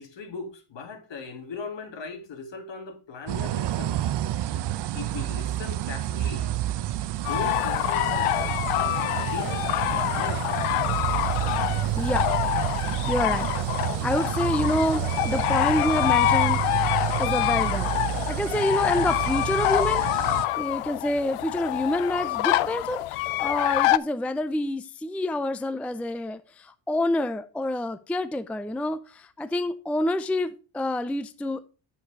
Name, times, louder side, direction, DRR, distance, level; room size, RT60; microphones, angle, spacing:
voice 1, 0.0-3.9 4.9-6.6 7.1-8.5 8.8-10.5, left 4 dB, 60° left, 2.3 m, -38 dB
sound 1, 3.3-20.5, right 13 dB, 55° right, 0.7 m, -29 dB
sound 2, 7.2-24.0, left 17 dB, 85° left, 0.6 m, -26 dB
voice 2, 12.0-12.3 13.1-13.5 14.0-16.9 17.2-31.7, left 1 dB, 5° left, 0.4 m, -28 dB
8.0 x 6.9 x 4.6 m
cardioid pair, 100°, 50 cm